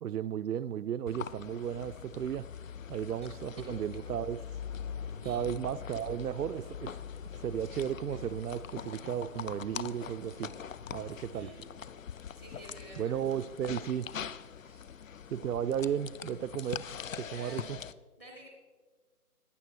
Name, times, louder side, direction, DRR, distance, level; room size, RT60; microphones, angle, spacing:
voice 1, 0.0-2.5 2.9-4.4 5.2-6.9 7.4-10.5 10.9-11.5 13.0-14.1 15.3-16.8 17.2-17.8, right 9 dB, 85° right, 13 dB, 0.5 m, -34 dB
sound 1, 1.1-17.9, left 7 dB, 60° left, 0.6 m, -43 dB
sound 2, 3.2-11.1, left 2 dB, 40° left, 3.4 m, -55 dB
voice 2, 3.2-3.8 5.2-5.5 11.0-11.7 12.4-13.2 14.6-14.9 17.2-17.7 18.2-18.5, right 1 dB, 10° left, 0 dB, 0.8 m, -52 dB
15.5 x 10.0 x 4.6 m, 1.5 s
figure-of-eight pair, 155°, 45 cm